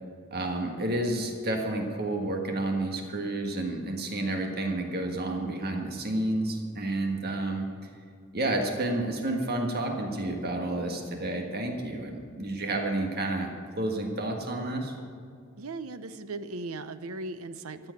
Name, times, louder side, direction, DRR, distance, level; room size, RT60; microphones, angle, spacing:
voice 1, 0.3-7.7 8.3-15.0, right 2 dB, 45° right, 2 dB, 1.6 m, -30 dB
voice 2, 15.6-17.9, right 2 dB, 75° right, 12 dB, 0.7 m, -38 dB
14.0 x 7.8 x 9.1 m, 2.2 s
head